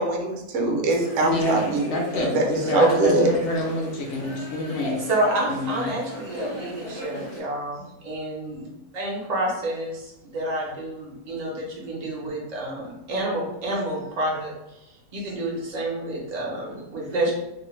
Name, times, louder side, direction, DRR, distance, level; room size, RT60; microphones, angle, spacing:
voice 1, 0.0-1.8 2.3-2.4 2.7-3.3, right 2 dB, 65° right, 1 dB, 0.8 m, -22 dB
sound 1, 0.9-7.4, equal, 25° left, 0.6 m, -31 dB
voice 2, 1.2-5.1 5.5-5.9, left 1 dB, 65° left, -1 dB, 0.7 m, -27 dB
voice 3, 5.1-8.7 8.9-14.5 15.1-17.3, right 1 dB, 45° right, -3 dB, 0.5 m, -29 dB
2.6 x 2.1 x 3.0 m, 0.92 s
omnidirectional pair, 1.6 m